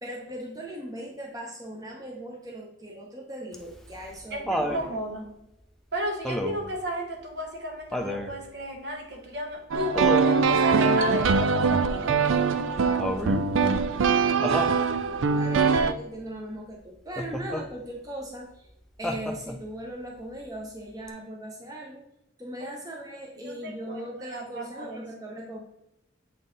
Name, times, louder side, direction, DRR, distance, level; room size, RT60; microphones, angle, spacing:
voice 1, 0.0-5.0 15.1-18.7 19.0-22.0 22.4-25.6, right 1 dB, 20° right, -1 dB, 0.8 m, -39 dB
Laughter, 3.5-4.9 6.2-6.7 7.9-8.4 9.9-10.5 13.0-13.5 14.4-14.8 17.2-17.7 19.0-19.7 21.1-21.2, left 1 dB, ahead, 0.4 m, -30 dB
voice 2, 4.3-5.3 5.9-13.4 22.6-22.8 23.4-25.0, right 1 dB, 60° right, 2 dB, 1.2 m, -34 dB
sound 1, 9.7-15.9, right 5 dB, 90° right, 0.4 m, -23 dB
7.5 x 3.9 x 3.9 m, 0.87 s
head